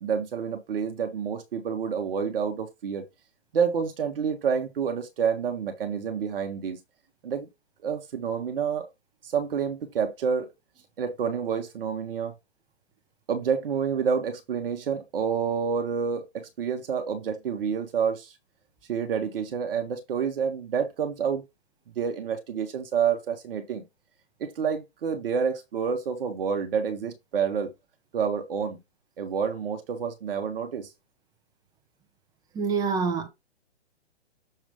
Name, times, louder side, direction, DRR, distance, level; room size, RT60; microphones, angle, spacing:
voice 1, 0.0-3.0 3.5-6.8 7.2-7.5 7.8-8.9 9.2-10.5 11.0-12.3 13.3-18.3 18.9-21.4 22.0-23.8 24.4-27.7 28.1-28.8 29.2-30.9, right 7 dB, 55° right, 1.2 m, -28 dB
voice 2, 32.5-33.3, right 5 dB, 10° right, 0.8 m, -26 dB
6.6 x 3.0 x 5.1 m
hypercardioid pair, 130°, 34 cm